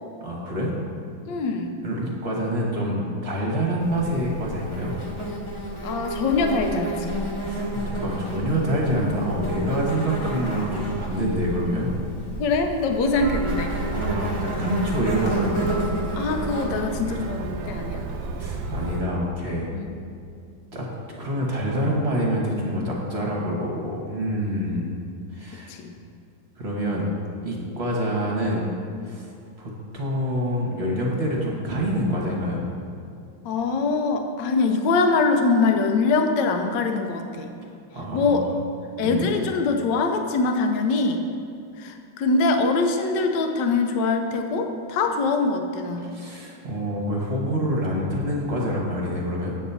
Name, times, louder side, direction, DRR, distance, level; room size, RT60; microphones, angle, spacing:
voice 1, 0.2-0.7 1.8-4.9 7.4-11.9 13.9-15.9 18.4-19.7 20.7-20.9 21.2-24.9 25.3-25.7 26.6-27.1 27.4-28.7 29.0-29.3 29.6-32.6 37.9-38.4 39.0-39.2 46.0-49.5, equal, 35° right, -3 dB, 1.4 m, -26 dB
voice 2, 1.3-1.7 5.8-7.2 12.4-13.8 16.1-18.0 19.7-19.9 25.5-25.9 33.4-37.5 38.1-38.5 39.0-41.2 41.8-46.2, left 3 dB, 70° left, 5 dB, 1.3 m, -23 dB
Insect, 3.8-19.0, right 1 dB, 20° left, 0.8 m, -31 dB
sound 1, 13.1-19.0, right 4 dB, 80° right, 1.3 m, -33 dB
8.6 x 4.2 x 6.9 m, 2.5 s
omnidirectional pair, 2.2 m